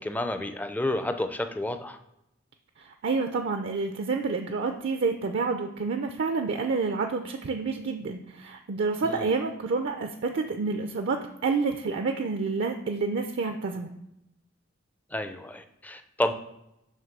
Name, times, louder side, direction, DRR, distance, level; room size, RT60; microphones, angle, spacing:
voice 1, 0.0-2.0 9.0-9.3 15.1-16.3, left 1 dB, 10° left, 8 dB, 0.4 m, -30 dB
voice 2, 2.8-13.9, right 4 dB, 60° right, 5 dB, 0.4 m, -29 dB
7.4 x 3.0 x 5.9 m, 0.84 s
head